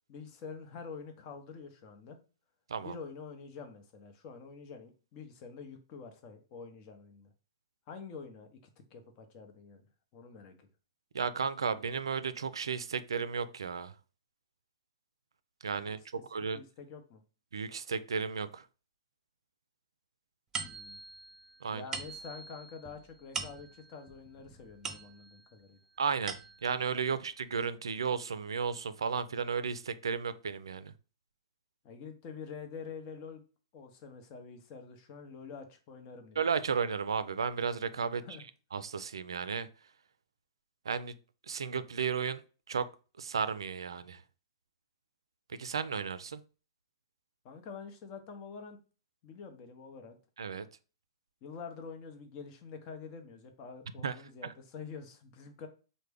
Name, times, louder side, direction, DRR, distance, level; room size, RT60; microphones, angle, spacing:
voice 1, 0.1-2.2 2.8-7.3 7.9-8.6 8.9-9.8 10.1-10.7 15.9-16.0 16.5-17.2 20.6-21.0 21.7-25.8 31.8-33.4 33.7-36.4 38.1-38.4 47.4-48.8 49.2-50.2 51.4-55.7, left 5 dB, 40° left, 0.8 m, -47 dB
voice 2, 11.1-13.9 15.6-16.0 16.3-16.6 17.5-18.6 21.6-21.9 26.0-26.4 26.6-30.9 36.4-38.2 38.7-39.7 40.9-41.1 41.5-42.4 42.7-42.9 43.2-44.2 45.5-46.4 50.4-50.7 54.0-54.1 54.4-54.5, right 6 dB, 85° right, 0.3 m, -33 dB
sound 1, 20.5-25.5 26.0-26.9, right 5 dB, 20° right, 0.6 m, -43 dB
3.3 x 2.1 x 3.4 m
hypercardioid pair, 120°, 3 cm